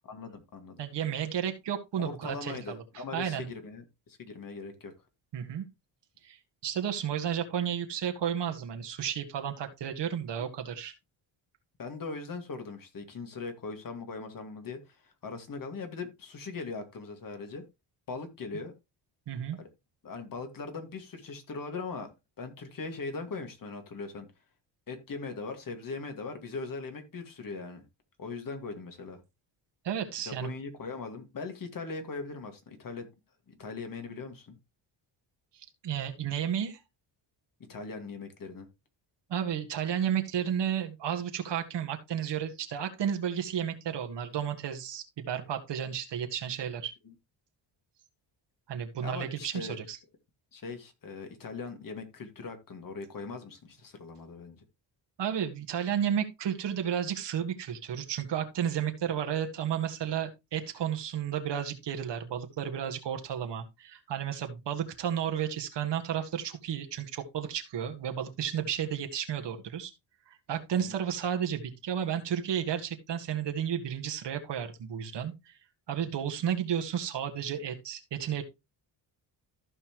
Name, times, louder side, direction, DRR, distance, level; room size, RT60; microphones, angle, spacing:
voice 1, 0.1-0.8 2.0-4.9 10.4-10.5 11.8-17.7 18.1-18.7 19.6-19.7 20.0-22.1 22.4-24.3 24.9-27.9 28.2-29.2 30.2-33.1 33.5-34.6 37.6-38.7 47.0-47.1 49.0-49.8 50.5-54.6 70.8-71.0, left 4 dB, 45° left, 2.1 m, -40 dB
voice 2, 0.8-3.5 5.3-5.6 6.2-6.4 6.6-10.9 19.3-19.6 29.8-30.5 35.5-36.8 39.3-46.9 48.7-50.0 55.2-69.9 70.3-75.6 75.9-78.4, right 9 dB, 65° right, 1.8 m, -32 dB
14.5 x 5.5 x 3.1 m
cardioid pair, 120°, 45 cm